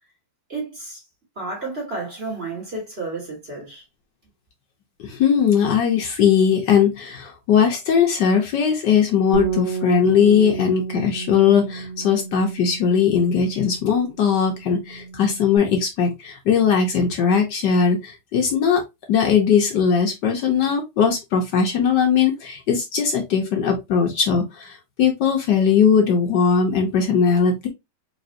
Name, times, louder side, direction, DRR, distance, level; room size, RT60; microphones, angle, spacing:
voice 1, 0.5-1.0 1.4-3.8, right 3 dB, 30° right, 2.0 m, -31 dB
voice 2, 5.0-18.8 19.1-27.7, left 7 dB, 65° left, 1.3 m, -19 dB
Bass guitar, 9.3-15.6, right 7 dB, 80° right, 1.8 m, -31 dB
4.2 x 3.0 x 2.7 m
omnidirectional pair, 2.1 m